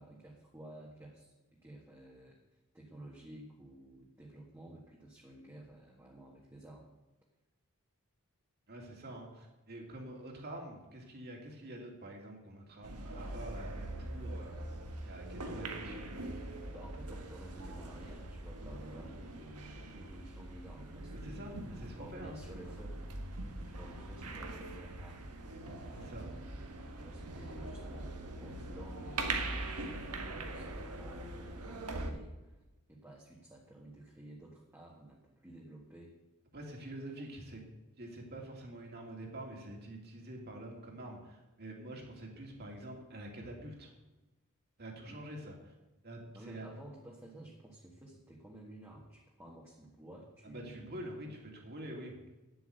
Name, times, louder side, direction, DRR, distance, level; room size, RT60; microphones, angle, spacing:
voice 1, 0.0-2.4 2.7-6.9 16.7-23.0 23.7-25.3 25.6-26.5 27.0-32.6 32.9-36.2 45.1-45.2 46.3-51.1, right 1 dB, 10° right, -2 dB, 1.6 m, -53 dB
voice 2, 8.7-14.6 15.0-16.2 21.2-22.4 25.9-26.2 36.5-37.6 38.0-43.9 44.8-45.7 46.0-46.7 50.4-52.1, right 1 dB, 45° right, 0 dB, 2.7 m, -46 dB
sound 1, 12.8-32.1, right 2 dB, 85° right, 1.5 m, -42 dB
9.8 x 8.0 x 7.8 m, 1.1 s
head